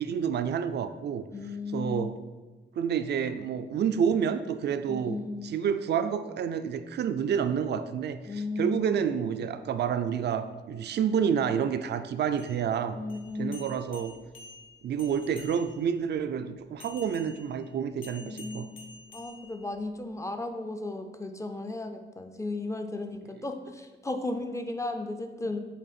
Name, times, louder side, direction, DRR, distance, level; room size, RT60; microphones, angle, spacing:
voice 1, 0.0-1.2 1.7-2.1 2.8-5.2 5.4-13.0 13.4-14.1 14.8-18.7, right 7 dB, 60° right, 10 dB, 0.4 m, -29 dB
voice 2, 1.3-2.2 4.9-5.5 8.3-9.0 12.9-13.6 18.2-18.7 19.1-25.6, left 2 dB, 15° left, 5 dB, 0.4 m, -35 dB
sound 1, 12.3-16.0 16.8-20.0, left 2 dB, 85° left, 1.2 m, -50 dB
8.3 x 3.4 x 4.2 m, 1.3 s
wide cardioid pair, 165°, 19 cm